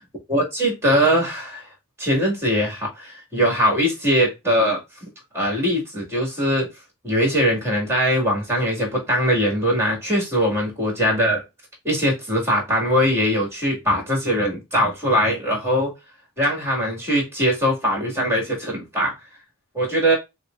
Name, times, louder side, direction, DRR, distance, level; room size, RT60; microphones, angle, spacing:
voice 1, 0.3-1.7 2.0-4.8 5.3-6.7 7.0-11.4 11.8-15.9 16.4-19.1 19.7-20.2, equal, 10° right, 2.0 m, -21 dB
6.1 x 2.2 x 2.5 m
head